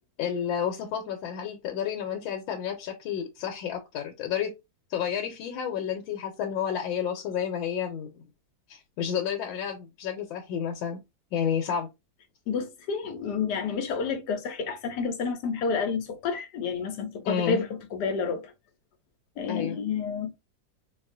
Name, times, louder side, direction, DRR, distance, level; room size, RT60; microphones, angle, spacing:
voice 1, 0.2-4.5 4.9-8.2 8.7-11.0 11.3-11.9 17.3-17.6 19.5-19.8, left 8 dB, 85° left, 1.4 m, -31 dB
voice 2, 12.5-18.5 19.4-20.3, left 5 dB, 65° left, 1.1 m, -30 dB
4.1 x 2.3 x 2.5 m
omnidirectional pair, 2.1 m